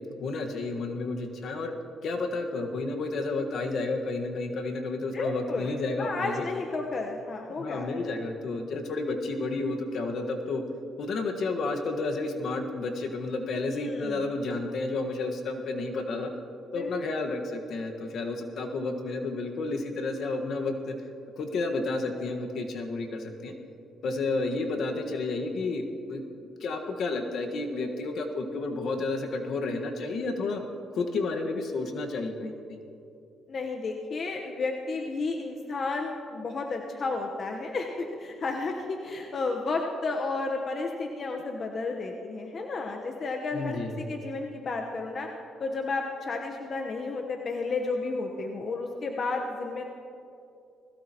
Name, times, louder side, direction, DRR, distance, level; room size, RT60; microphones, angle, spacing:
voice 1, 0.2-1.7 2.0-6.5 7.6-10.6 11.0-16.3 16.7-21.0 21.4-23.5 24.0-30.6 30.9-32.8 43.5-44.1, left 3 dB, 65° left, 3 dB, 1.5 m, -31 dB
voice 2, 5.1-7.9 13.7-14.2 16.7-16.9 33.5-45.3 45.6-49.9, left 3 dB, 50° left, 2 dB, 1.1 m, -32 dB
20.5 x 16.5 x 3.0 m, 2.7 s
cardioid pair, 90°, 0 cm